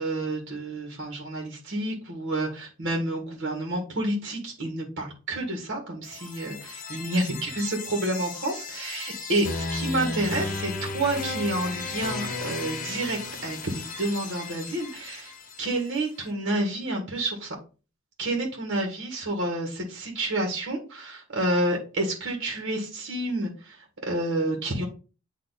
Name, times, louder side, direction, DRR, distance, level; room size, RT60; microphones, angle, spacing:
voice 1, 0.0-13.7 14.0-15.3 15.6-17.5 18.2-24.8, right 1 dB, 55° right, 1 dB, 1.8 m, -29 dB
sound 1, 6.0-16.0, left 3 dB, 40° left, 1.0 m, -35 dB
8.7 x 3.0 x 4.1 m, 0.33 s
head